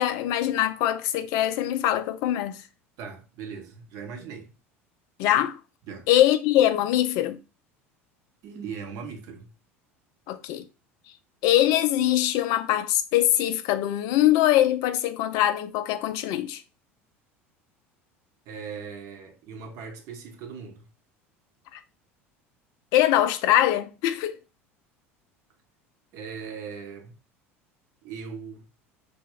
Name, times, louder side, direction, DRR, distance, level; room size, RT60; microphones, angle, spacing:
voice 1, 0.0-2.6 5.2-5.6 6.1-7.4 10.3-10.6 11.4-16.6 21.7-21.8 22.9-24.4, left 13 dB, 55° left, 0.4 m, -23 dB
voice 2, 3.0-4.5 5.8-6.1 8.4-9.5 18.5-20.9 26.1-27.2 28.0-28.7, right 6 dB, 55° right, 0.7 m, -39 dB
3.3 x 2.0 x 3.5 m
figure-of-eight pair, 70°, 7 cm